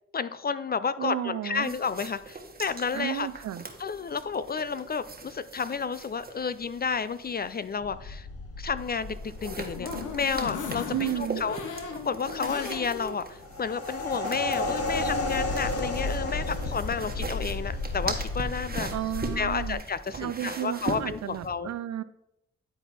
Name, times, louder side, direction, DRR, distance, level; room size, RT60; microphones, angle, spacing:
voice 1, 0.1-3.3 3.8-8.3 8.6-11.6 12.0-18.9 19.4-21.7, left 5 dB, 30° left, 15 dB, 0.4 m, -31 dB
voice 2, 1.0-1.7 2.9-3.6 10.9-11.4 18.9-19.8 20.2-22.0, right 12 dB, 60° right, 14 dB, 0.5 m, -32 dB
sound 1, 1.6-7.8 8.8-21.5, right 3 dB, 30° right, 1.4 m, -40 dB
sound 2, 7.8-19.7, left 2 dB, 50° left, 1.2 m, -33 dB
sound 3, 9.2-13.2 13.6-13.7 14.0-14.1, left 5 dB, 70° left, 1.0 m, -37 dB
9.9 x 4.0 x 4.2 m, 0.83 s
supercardioid pair, 50°, 31 cm